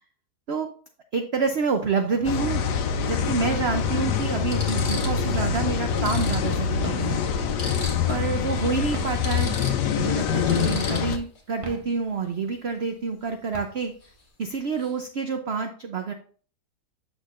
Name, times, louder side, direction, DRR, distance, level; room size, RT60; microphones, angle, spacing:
voice 1, 1.1-2.6 3.1-7.2 8.1-9.5 10.0-13.9 14.4-16.1, right 5 dB, 55° right, 6 dB, 0.7 m, -28 dB
sound 1, 1.4-1.6 3.1-3.2 3.9-4.0 4.4-5.3 5.6-5.7 6.0-8.3 8.6-8.7 9.0-11.4 14.0-14.2 14.5-15.0, left 2 dB, 30° left, 1.8 m, -38 dB
sound 2, 2.2-11.2, left 7 dB, 85° left, 1.3 m, -25 dB
sound 3, 4.1-4.6 5.0-6.0 6.6-8.4 8.8-10.0 10.3-10.8 11.4-12.5 13.0-13.1 13.3-14.2, right 3 dB, 25° right, 1.0 m, -40 dB
8.4 x 6.3 x 2.5 m, 0.43 s
omnidirectional pair, 1.7 m